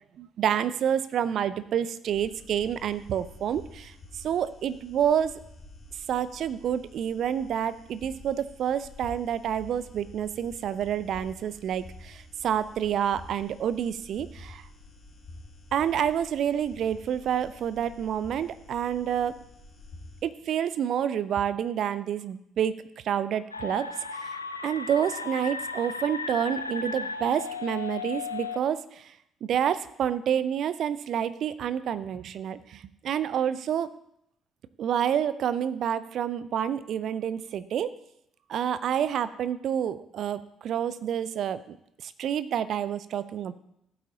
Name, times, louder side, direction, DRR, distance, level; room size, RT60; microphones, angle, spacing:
voice 1, 0.2-5.4 6.1-14.7 15.7-19.4 20.2-22.7 23.0-24.4 24.6-29.1 29.4-33.9 34.8-37.9 38.5-41.8 42.0-43.5, right 9 dB, 50° right, 15 dB, 0.5 m, -28 dB
sound 1, 2.1-20.2, left 2 dB, 40° left, 2.2 m, -49 dB
sound 2, 23.5-28.6, left 4 dB, 85° left, 0.4 m, -35 dB
15.0 x 8.3 x 2.9 m, 0.76 s
figure-of-eight pair, 45°, 0 cm